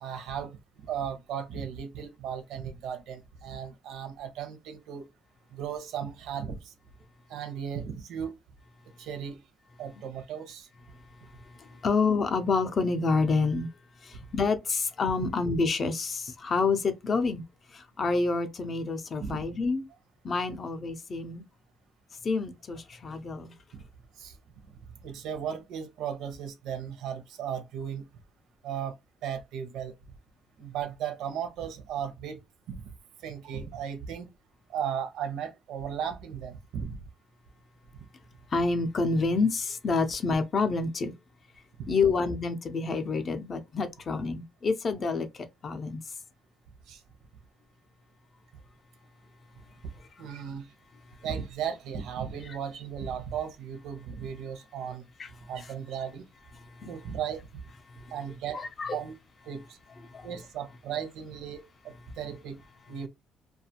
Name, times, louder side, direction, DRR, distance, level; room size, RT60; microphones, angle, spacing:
voice 1, 0.0-5.1 5.5-6.7 7.3-8.3 9.0-9.4 9.8-10.7 14.1-14.2 15.2-15.3 19.2-19.4 23.7-23.9 24.2-24.4 25.0-28.1 28.6-28.9 29.2-29.9 30.6-32.4 32.7-32.9 33.2-34.3 34.7-37.0 41.8-41.9 46.9-47.0 49.8-49.9 50.2-50.7 51.2-55.0 55.5-56.2 56.9-57.6 58.1-58.7 58.9-59.1 59.4-59.8 60.2-63.1, right 8 dB, 80° right, 0.6 m, -36 dB
voice 2, 11.5-13.7 14.0-17.4 17.7-19.9 20.2-21.4 22.2-23.5 38.5-41.1 41.9-46.0 55.2-55.3 56.6-56.9 57.9-58.1 58.5-59.0 60.0-60.3, left 4 dB, 35° left, 0.4 m, -28 dB
2.4 x 2.3 x 2.7 m
cardioid pair, 130°, 0 cm